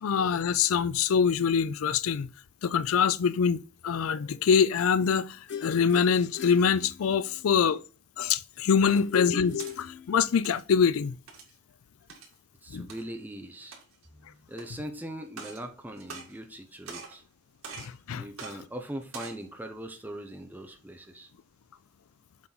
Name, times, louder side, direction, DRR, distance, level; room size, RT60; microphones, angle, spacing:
voice 1, 0.0-2.3 2.6-5.4 5.6-7.8 8.2-11.2 12.7-12.9 17.8-18.3, left 6 dB, 90° left, 0.4 m, -25 dB
sound 1, 5.5-7.4 8.9-10.5, left 7 dB, 60° left, 0.9 m, -37 dB
sound 2, 9.6-9.7 10.3-10.6 11.3-11.6 12.1-12.3 12.9-13.0 13.6-14.0 14.5-14.6 15.3-15.6 16.0-16.6 16.9-17.2 17.6-17.9 18.4-18.5 19.0-19.4, right 4 dB, 85° right, 2.2 m, -43 dB
voice 2, 12.6-13.8 14.1-17.2 18.1-21.3, right 1 dB, 10° right, 0.7 m, -41 dB
7.3 x 4.5 x 4.0 m
head